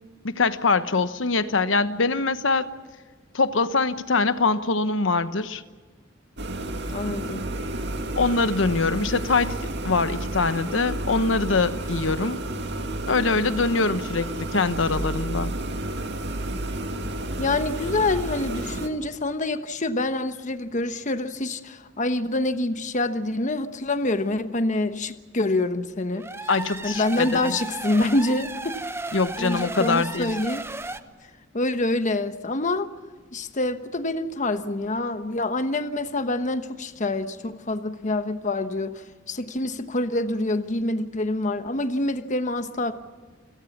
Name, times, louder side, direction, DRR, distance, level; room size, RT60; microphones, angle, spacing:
voice 1, 0.2-2.7 3.3-5.6 8.2-9.6 9.8-12.4 13.1-15.5 26.5-27.6 29.1-30.3, left 3 dB, 80° left, 12 dB, 1.1 m, -23 dB
sound 1, 6.4-18.9, right 1 dB, 65° right, 2.2 m, -31 dB
voice 2, 6.9-7.4 17.4-26.3 26.8-28.8 29.4-30.6 31.5-32.9 33.3-38.9 39.3-42.9, left 2 dB, 40° left, 10 dB, 1.2 m, -26 dB
sound 2, 26.1-31.0, right 2 dB, 15° right, 0.9 m, -34 dB
28.5 x 17.5 x 7.3 m, 1.4 s
head